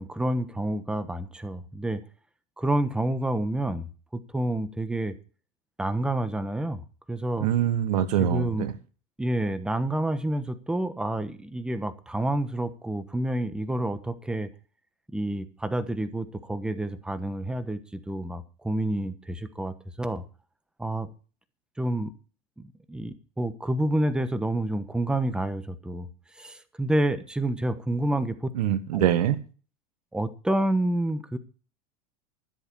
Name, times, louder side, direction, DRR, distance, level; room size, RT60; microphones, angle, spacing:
voice 1, 0.0-2.0 2.6-5.2 5.8-6.8 7.1-7.5 8.2-8.7 9.2-14.5 15.1-20.2 20.8-21.1 21.8-22.1 22.6-26.1 26.4-28.5 28.9-29.1 30.1-31.4, right 1 dB, 5° right, 1.1 m, -29 dB
voice 2, 7.4-8.7 28.5-29.4, right 10 dB, 85° right, 1.5 m, -24 dB
13.0 x 8.1 x 5.5 m
supercardioid pair, 120°, 20 cm